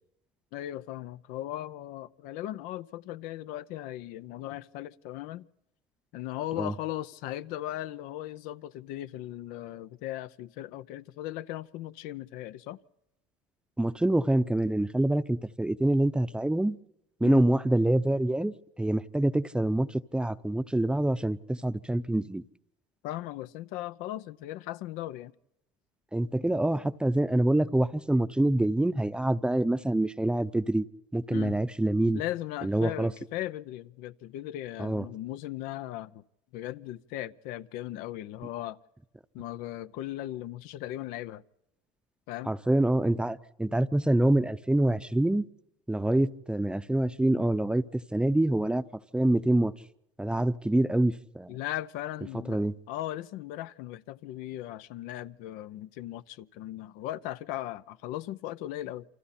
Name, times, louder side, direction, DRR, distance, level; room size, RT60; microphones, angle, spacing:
voice 1, 0.5-5.5 6.1-12.8 17.2-17.5 23.0-25.3 31.3-31.6 32.1-36.2 36.5-38.8 39.3-41.4 42.3-42.5 51.5-52.6 52.9-59.1, left 14 dB, 75° left, 0.8 m, -38 dB
voice 2, 13.8-16.8 17.2-22.4 26.1-30.9 31.1-32.2 32.6-33.1 34.8-35.0 42.5-45.5 45.9-47.8 48.1-48.8 49.1-49.7 50.2-51.5 52.5-52.8, right 1 dB, 5° right, 0.7 m, -26 dB
28.5 x 25.0 x 4.3 m
supercardioid pair, 105°, 14 cm